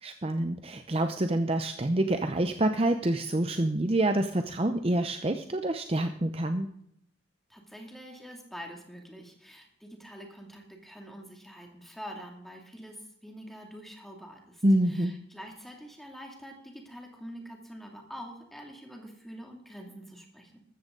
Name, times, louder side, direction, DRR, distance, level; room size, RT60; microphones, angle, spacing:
voice 1, 0.0-6.7 14.6-15.2, right 1 dB, 30° right, 7 dB, 0.7 m, -27 dB
voice 2, 7.5-20.6, equal, ahead, 1 dB, 2.4 m, -46 dB
14.0 x 14.0 x 3.9 m, 0.73 s
head